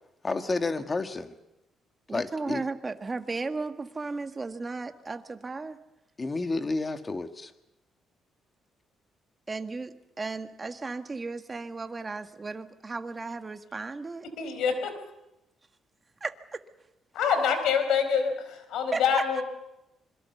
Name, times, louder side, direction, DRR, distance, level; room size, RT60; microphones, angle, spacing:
voice 1, 0.2-1.4 2.1-2.6 6.2-7.5, left 3 dB, 30° left, 7 dB, 1.9 m, -30 dB
voice 2, 2.1-5.8 9.5-14.3 16.2-16.6 18.9-19.4, right 3 dB, 25° right, 8 dB, 1.6 m, -35 dB
voice 3, 14.4-14.9 17.1-19.4, left 6 dB, 80° left, 9 dB, 4.5 m, -26 dB
26.5 x 22.0 x 6.9 m, 0.90 s
cardioid pair, 90°, 0 cm